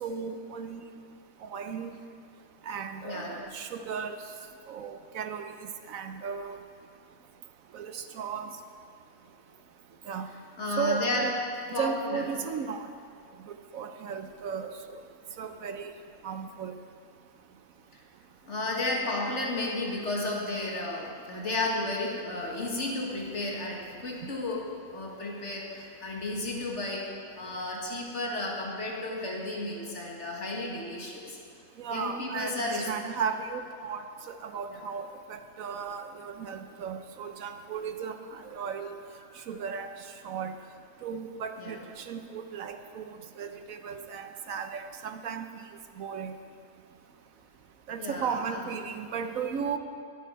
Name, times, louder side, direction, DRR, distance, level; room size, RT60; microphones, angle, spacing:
voice 1, 0.0-0.9 1.4-1.9 2.7-4.2 4.7-5.5 5.9-6.6 7.7-8.5 10.1-10.3 10.8-11.3 11.7-12.8 13.5-15.0 15.4-15.9 16.2-16.7 24.2-24.3 31.8-39.0 39.5-39.9 40.2-40.5 41.0-43.0 43.4-45.5 46.0-46.3 47.9-49.8, right 6 dB, 70° right, 8 dB, 1.1 m, -35 dB
voice 2, 3.0-3.4 10.6-11.3 11.7-12.3 17.9-18.0 18.5-31.4 31.9-32.9 34.7-34.8 41.6-41.8 48.0-48.7, left 2 dB, 50° left, -2 dB, 2.0 m, -33 dB
21.0 x 8.4 x 4.6 m, 2.4 s
omnidirectional pair, 1.6 m